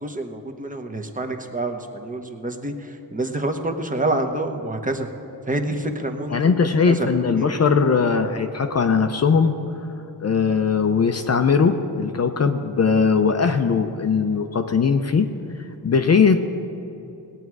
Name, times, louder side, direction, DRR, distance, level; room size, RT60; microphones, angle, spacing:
voice 1, 0.0-5.1 5.5-6.5 6.9-7.1 7.3-7.5, right 2 dB, 20° right, 4 dB, 1.0 m, -27 dB
voice 2, 6.3-9.6 10.2-15.3 15.8-16.4, left 5 dB, 35° left, 6 dB, 0.6 m, -19 dB
18.5 x 8.9 x 4.7 m, 3.0 s
cardioid pair, 110°, 43 cm